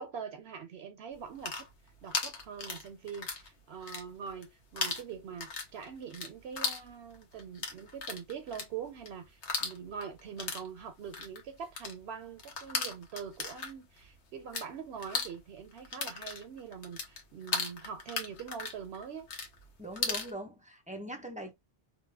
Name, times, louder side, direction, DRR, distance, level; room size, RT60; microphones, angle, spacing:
voice 1, 0.0-1.7 2.0-19.3, right 7 dB, 70° right, 0.8 m, -43 dB
sound 1, 1.2-3.5 3.8-4.5 4.8-14.7 15.0-20.3, left 4 dB, 75° left, 1.1 m, -37 dB
voice 2, 19.8-21.5, right 1 dB, 10° right, 0.5 m, -41 dB
2.9 x 2.0 x 3.3 m
omnidirectional pair, 1.2 m